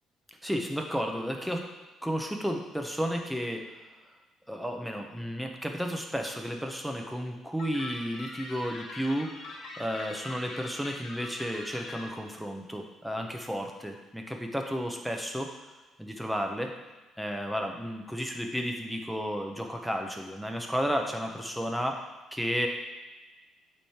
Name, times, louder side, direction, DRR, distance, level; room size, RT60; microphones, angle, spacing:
voice 1, 0.4-1.7 2.0-3.7 4.5-15.5 16.0-16.7 17.2-22.7, equal, ahead, 2 dB, 0.8 m, -32 dB
sound 1, 7.6-12.0, left 2 dB, 75° left, 1.4 m, -43 dB
8.7 x 3.3 x 4.4 m, 1.2 s
cardioid pair, 110°, 0 cm